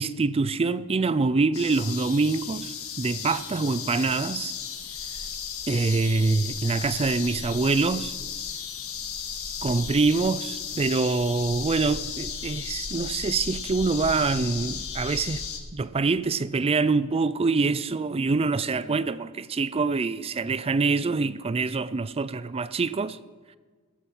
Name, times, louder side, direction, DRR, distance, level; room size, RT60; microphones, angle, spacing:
voice 1, 0.0-4.5 5.7-8.1 9.6-15.4 15.7-23.2, right 4 dB, 25° right, 0.4 m, -25 dB
sound 1, 1.5-15.6, left 7 dB, 80° left, 1.9 m, -35 dB
16.0 x 13.0 x 5.6 m
head